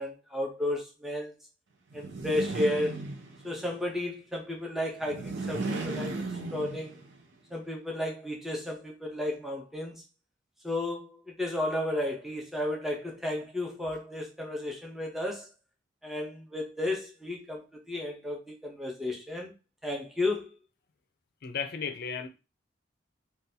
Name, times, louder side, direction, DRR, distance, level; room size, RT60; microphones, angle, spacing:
voice 1, 0.0-1.3 1.9-2.9 3.4-6.3 6.5-7.0 7.5-10.0 10.6-15.5 16.0-19.5 19.8-20.5, left 1 dB, ahead, 0.6 m, -33 dB
sound 1, 1.9-3.6 5.0-7.2, right 3 dB, 80° right, 0.6 m, -35 dB
voice 2, 21.4-22.3, left 6 dB, 55° left, 0.5 m, -34 dB
3.8 x 2.3 x 2.7 m
head